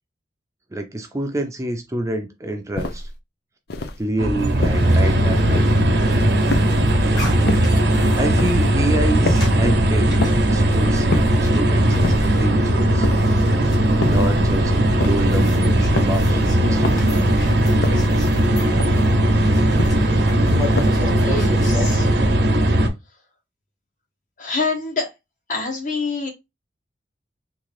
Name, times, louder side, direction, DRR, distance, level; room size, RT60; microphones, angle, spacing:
voice 1, 0.7-3.1 4.0-5.8 8.1-13.1 14.0-14.7 15.1-16.8, right 1 dB, 20° right, 0.5 m, -27 dB
sound 1, 2.8-3.2 3.7-4.1 4.6-5.0 5.5-5.9 6.5-6.9 7.5-7.8 8.4-8.7 9.3-9.6 10.2-10.6 11.1-11.5 12.0-12.4 13.0-13.4 14.0-14.4 15.0-15.4 16.0-16.3 16.8-17.2 17.8-18.2 18.8-19.2 19.8-20.2 20.8-21.2, left 3 dB, 65° left, 0.6 m, -28 dB
sound 2, 4.2-22.9, right 1 dB, 65° right, 0.8 m, -18 dB
sound 3, 4.4-22.1, left 1 dB, 20° left, 1.4 m, -34 dB
voice 2, 21.2-22.1 24.4-25.1 25.5-26.3, left 3 dB, 45° left, 1.3 m, -26 dB
3.7 x 2.6 x 3.1 m
head